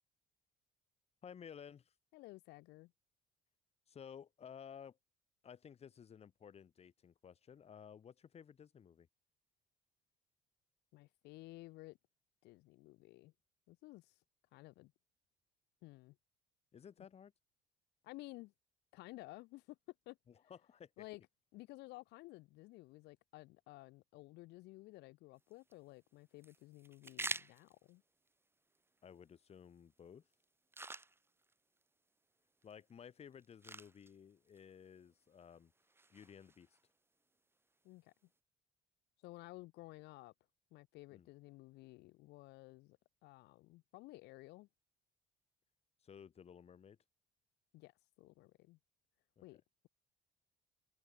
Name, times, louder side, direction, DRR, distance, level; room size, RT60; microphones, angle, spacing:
voice 1, 1.2-1.9 3.9-5.0 5.4-9.1 16.7-17.3 20.5-21.0 29.0-30.2 32.6-35.7 36.1-36.7 41.1-41.3 46.0-47.0 49.4-49.5, left 7 dB, 40° left, 1.2 m, -55 dB
voice 2, 2.1-2.9 10.9-12.0 12.4-13.3 13.7-14.2 14.5-14.9 15.8-16.2 18.0-18.5 18.9-19.8 20.1-20.2 20.4-20.5 21.0-21.2 21.5-28.0 37.8-38.1 39.2-40.3 40.7-44.7 47.7-48.8 49.4-49.9, left 20 dB, 80° left, 0.6 m, -54 dB
sound 1, 25.4-38.4, right 2 dB, 15° right, 1.6 m, -52 dB
cardioid pair, 110°, 17 cm